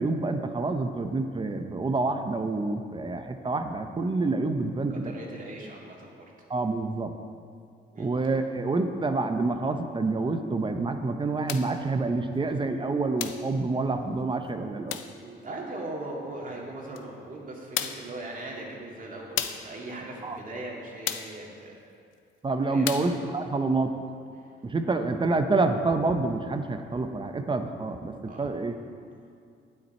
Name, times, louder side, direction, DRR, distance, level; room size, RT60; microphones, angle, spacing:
voice 1, 0.0-5.1 6.5-7.1 8.0-15.0 20.2-20.4 22.4-23.9 24.6-28.7, right 3 dB, 25° right, 7 dB, 0.8 m, -27 dB
voice 2, 4.9-6.5 7.9-8.1 15.1-21.8 22.7-23.1 28.3-28.4, right 2 dB, 40° right, -2 dB, 2.2 m, -39 dB
sound 1, 11.5-11.8 13.2-13.5 14.9-15.2 17.0-17.1 17.8-18.1 19.4-19.7 21.1-21.4 22.9-23.2, left 11 dB, 85° left, 0.5 m, -33 dB
9.4 x 9.2 x 4.3 m, 2.3 s
cardioid pair, 90°, 20 cm